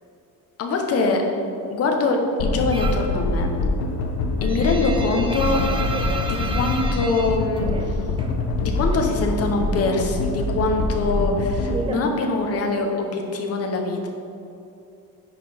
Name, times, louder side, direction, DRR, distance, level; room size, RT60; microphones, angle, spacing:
voice 1, 0.6-1.2 1.7-3.5 4.4-5.6 6.2-7.9 8.6-14.1, left 3 dB, 40° left, 2 dB, 0.8 m, -23 dB
sound 1, 2.4-11.8, left 2 dB, 80° left, 0.8 m, -25 dB
sound 2, 2.7-3.2 3.5-8.4 8.6-9.7 10.0-12.8, right 3 dB, 15° right, 0.3 m, -32 dB
9.8 x 4.4 x 3.4 m, 2.7 s
cardioid pair, 170°, 36 cm